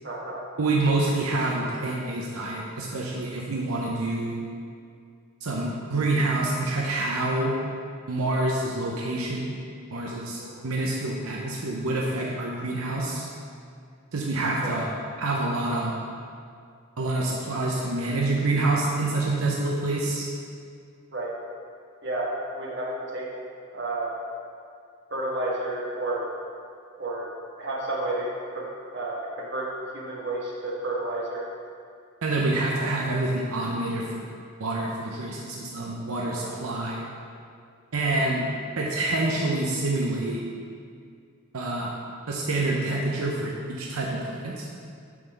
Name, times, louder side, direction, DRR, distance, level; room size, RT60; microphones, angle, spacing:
voice 1, 0.0-0.5 10.4-10.7 14.6-14.8 21.1-21.3 22.0-23.3 23.7-24.2 25.1-26.3 27.0-27.3 27.6-31.5 32.8-32.9 36.3-36.5 36.9-37.3, right 2 dB, 55° right, -4 dB, 1.3 m, -31 dB
voice 2, 0.6-4.4 5.4-7.5 8.1-9.5 9.9-13.3 14.1-14.9 15.2-15.9 17.0-20.3 32.2-34.3 34.6-37.0 37.9-38.5 38.8-40.4 41.5-41.9 42.3-44.7, right 2 dB, 85° right, -2 dB, 0.7 m, -27 dB
7.7 x 3.9 x 5.2 m, 2.3 s
head